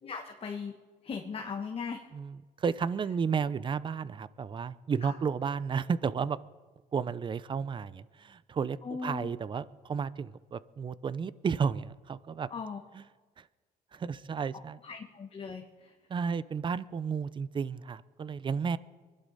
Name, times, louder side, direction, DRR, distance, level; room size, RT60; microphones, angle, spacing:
voice 1, 0.0-0.7 1.0-2.0 5.0-5.1 8.8-9.3 12.5-12.8 14.8-15.9, left 5 dB, 35° left, 1 dB, 1.3 m, -38 dB
voice 2, 2.1-6.4 6.9-12.5 12.9-13.0 13.4-13.5 13.9-14.8 16.1-18.8, right 6 dB, 30° right, 18 dB, 0.5 m, -32 dB
24.5 x 11.5 x 4.1 m, 1.4 s
cardioid pair, 110°, 17 cm